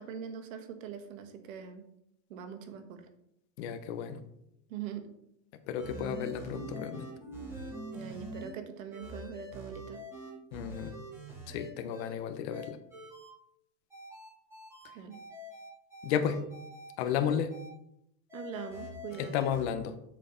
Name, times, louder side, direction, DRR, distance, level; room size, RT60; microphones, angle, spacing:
voice 1, 0.0-1.9 2.3-3.0 4.7-5.1 7.9-10.0 14.9-15.2 18.3-19.5, right 8 dB, 80° right, 8 dB, 1.5 m, -42 dB
voice 2, 3.6-4.2 5.7-7.1 10.5-10.9 11.5-12.8 16.0-16.4 17.0-17.5 19.2-19.9, left 8 dB, 55° left, 8 dB, 1.0 m, -32 dB
sound 1, 5.8-8.5 8.9-12.1 12.5-13.3 13.9-17.7 18.3-19.6, equal, 5° right, 2.9 m, -45 dB
7.9 x 6.6 x 3.9 m, 0.78 s
supercardioid pair, 160°, 39 cm